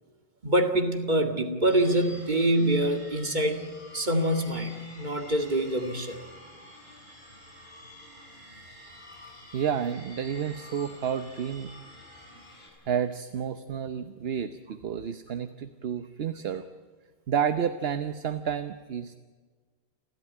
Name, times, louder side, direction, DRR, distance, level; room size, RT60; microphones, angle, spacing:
voice 1, 0.4-3.6 3.9-6.2, right 1 dB, 45° right, 5 dB, 2.4 m, -25 dB
sound 1, 1.7-12.7, left 1 dB, 45° left, 7.4 m, -49 dB
voice 2, 9.2-11.7 12.8-16.7 17.3-19.1, right 8 dB, 70° right, 10 dB, 1.1 m, -30 dB
29.5 x 12.5 x 9.7 m, 1.5 s
omnidirectional pair, 1.1 m